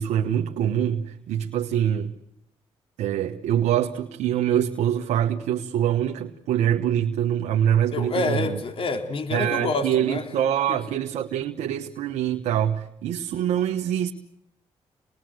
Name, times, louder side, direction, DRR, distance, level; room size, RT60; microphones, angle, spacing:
voice 1, 0.0-2.1 3.0-8.6 9.3-14.1, right 10 dB, 85° right, 1.3 m, -24 dB
voice 2, 7.9-10.3 10.7-10.8, left 3 dB, 55° left, 3.5 m, -27 dB
28.5 x 20.5 x 7.9 m
supercardioid pair, 60°, 12 cm